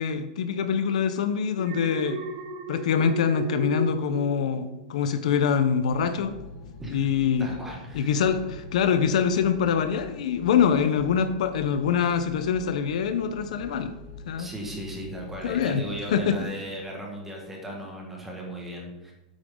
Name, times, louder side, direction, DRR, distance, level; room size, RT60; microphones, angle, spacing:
voice 1, 0.0-2.2 2.7-6.4 6.9-7.5 7.9-13.9 14.3-14.5 15.4-15.8 16.1-16.4, left 7 dB, 65° left, 9 dB, 0.8 m, -24 dB
Alarm, 1.6-4.9 5.3-5.6, right 2 dB, 55° right, 1.8 m, -34 dB
sound 1, 5.9-16.4, left 2 dB, 35° left, 3.2 m, -45 dB
voice 2, 7.4-8.2 14.4-19.1, equal, 5° right, -1 dB, 1.7 m, -37 dB
9.0 x 8.8 x 3.8 m, 1.1 s
supercardioid pair, 180°, 4 cm